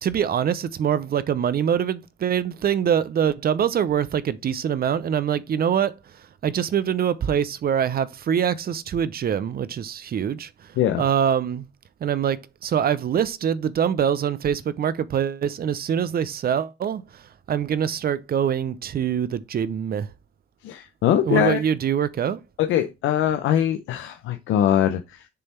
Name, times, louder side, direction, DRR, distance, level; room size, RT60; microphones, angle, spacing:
voice 1, 0.0-5.9 6.4-11.7 12.0-20.1 21.2-22.4, right 8 dB, 50° right, 0.6 m, -24 dB
voice 2, 20.6-21.6 22.6-25.3, left 10 dB, 85° left, 0.7 m, -22 dB
6.8 x 3.5 x 4.3 m
cardioid pair, 90°, 20 cm